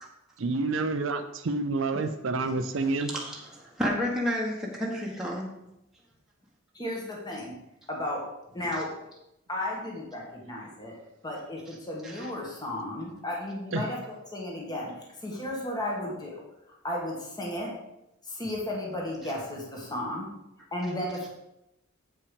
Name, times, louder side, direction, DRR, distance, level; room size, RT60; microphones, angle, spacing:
voice 1, 0.4-3.1 13.7-13.9, right 3 dB, 65° right, 8 dB, 0.5 m, -28 dB
voice 2, 3.1-5.5 12.1-12.3, equal, ahead, -4 dB, 1.3 m, -30 dB
voice 3, 6.7-7.5 7.9-8.2 8.5-8.9 9.5-11.0 11.2-16.4 16.8-17.7 18.2-20.3 20.7-21.3, left 1 dB, 20° left, -2 dB, 1.7 m, -34 dB
8.3 x 5.5 x 5.2 m, 0.87 s
head